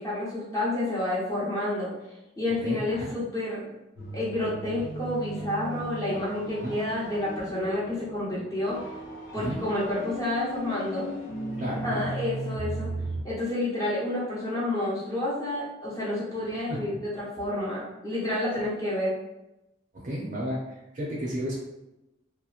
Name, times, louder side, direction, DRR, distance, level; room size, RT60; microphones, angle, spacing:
voice 1, 0.0-1.9 2.4-3.6 4.1-8.8 9.3-11.1 11.8-12.9 13.2-19.1, left 1 dB, 20° left, -8 dB, 0.8 m, -29 dB
voice 2, 2.6-3.1 6.6-6.7 9.4-9.6 11.6-12.0 20.0-20.6 20.9-21.6, equal, 40° right, -4 dB, 0.6 m, -32 dB
sound 1, 4.0-13.2, right 1 dB, 90° left, 0.6 m, -37 dB
2.9 x 2.1 x 2.4 m, 0.92 s
head